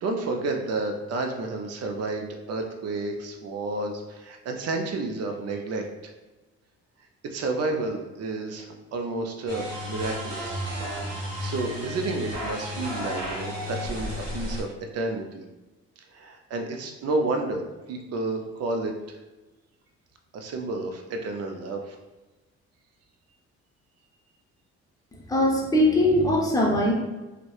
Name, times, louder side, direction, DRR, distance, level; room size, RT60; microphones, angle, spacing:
voice 1, 0.0-6.1 7.2-10.6 11.1-15.4 16.0-17.6 17.9-19.2 20.3-22.0, right 2 dB, 55° right, 4 dB, 0.5 m, -31 dB
sound 1, 9.5-14.6, equal, 35° right, 1.3 m, -33 dB
voice 2, 25.3-26.9, left 1 dB, 10° left, -2 dB, 0.6 m, -21 dB
2.7 x 2.1 x 2.3 m, 1.1 s
cardioid pair, 90°, 30 cm